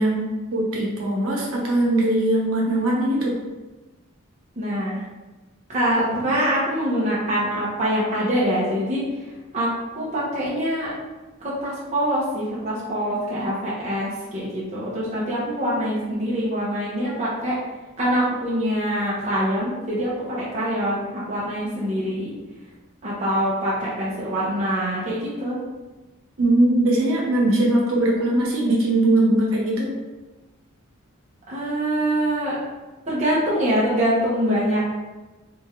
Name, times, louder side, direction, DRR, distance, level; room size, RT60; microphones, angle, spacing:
voice 1, 0.0-3.3 26.4-29.9, right 1 dB, 75° right, -3 dB, 1.0 m, -20 dB
voice 2, 4.6-5.0 5.7-9.0 9.5-9.7 9.9-10.9 11.4-17.5 18.0-22.3 23.0-25.6 31.5-32.6 33.1-34.8, equal, 35° right, -7 dB, 0.9 m, -24 dB
3.5 x 3.4 x 3.2 m, 1.2 s
head